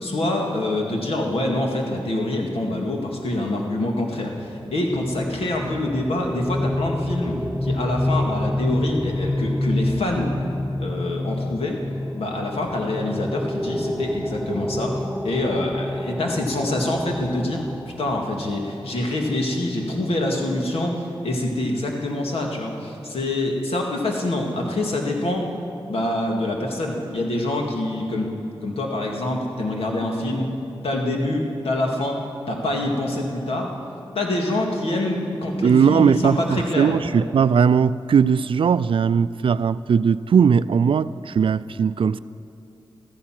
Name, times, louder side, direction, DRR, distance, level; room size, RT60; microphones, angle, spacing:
voice 1, 0.0-10.3 10.8-11.8 12.1-17.6 18.0-25.5 25.9-28.3 28.6-30.5 30.8-33.7 34.1-37.0, left 1 dB, 85° left, 1 dB, 2.1 m, -25 dB
sound 1, 4.4-19.2, left 1 dB, 5° left, 0.6 m, -28 dB
voice 2, 35.6-42.2, right 6 dB, 65° right, 16 dB, 0.4 m, -19 dB
14.5 x 13.5 x 6.0 m, 2.6 s
wide cardioid pair, 95°, 10 cm